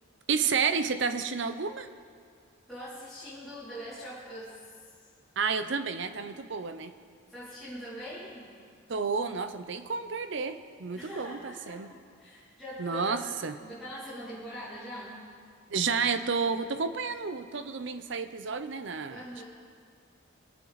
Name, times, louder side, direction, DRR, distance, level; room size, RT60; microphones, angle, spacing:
voice 1, 0.3-1.9 5.4-6.9 8.9-11.9 12.8-13.6 15.7-19.2, right 5 dB, 60° right, 10 dB, 0.6 m, -31 dB
voice 2, 2.7-4.6 7.3-8.5 10.9-13.2 13.5-15.2 19.1-19.4, equal, ahead, -11 dB, 2.5 m, -42 dB
21.5 x 7.7 x 4.1 m, 2.1 s
head